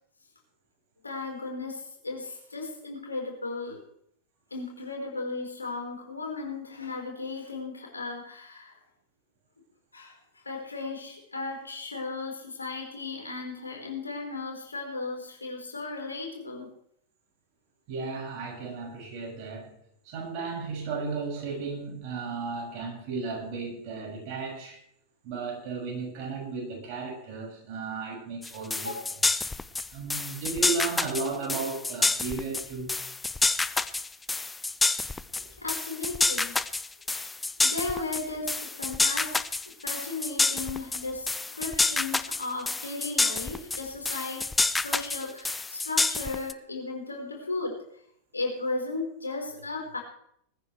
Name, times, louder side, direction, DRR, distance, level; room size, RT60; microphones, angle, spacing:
voice 1, 1.0-3.8 4.5-8.8 9.9-10.2 10.4-16.7 28.8-29.0 35.6-36.5 37.6-39.4 39.6-44.5 44.8-47.8 48.3-50.0, left 3 dB, 80° left, 1 dB, 4.7 m, -35 dB
voice 2, 17.9-19.7 20.0-24.8 25.2-28.9 29.9-33.0 35.3-35.5, right 4 dB, 45° right, 0 dB, 6.8 m, -34 dB
sound 1, 28.4-46.5, left 3 dB, 10° left, 0.7 m, -28 dB
20.5 x 14.5 x 3.4 m, 0.69 s
figure-of-eight pair, 90°, 0 cm